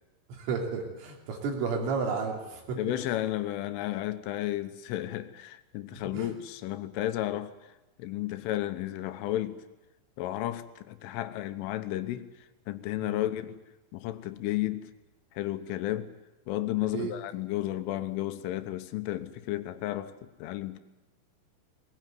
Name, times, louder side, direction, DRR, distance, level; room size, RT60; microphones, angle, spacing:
voice 1, 0.3-2.8 5.9-6.3 13.0-13.2 16.9-17.1, right 5 dB, 90° right, 1 dB, 5.7 m, -32 dB
voice 2, 2.8-7.7 8.0-9.6 10.2-12.3 12.7-13.6 13.9-14.9 15.4-16.1 16.5-20.8, left 14 dB, 85° left, 11 dB, 3.5 m, -33 dB
20.0 x 19.5 x 9.3 m, 1.1 s
omnidirectional pair, 5.6 m